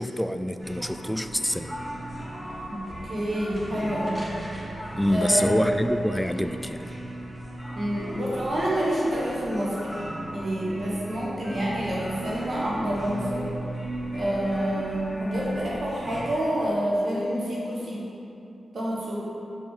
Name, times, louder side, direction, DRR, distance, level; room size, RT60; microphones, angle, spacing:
voice 1, 0.0-1.7 4.9-6.8, equal, 5° left, 8 dB, 0.3 m, -26 dB
sound 1, 0.6-16.3, right 1 dB, 15° right, 1.5 m, -36 dB
voice 2, 2.7-4.2 5.0-5.7 7.7-9.9 10.3-13.5 14.1-18.1 18.7-19.2, right 1 dB, 60° right, -6 dB, 1.3 m, -28 dB
6.1 x 4.4 x 3.8 m, 2.7 s
cardioid pair, 45°, 0 cm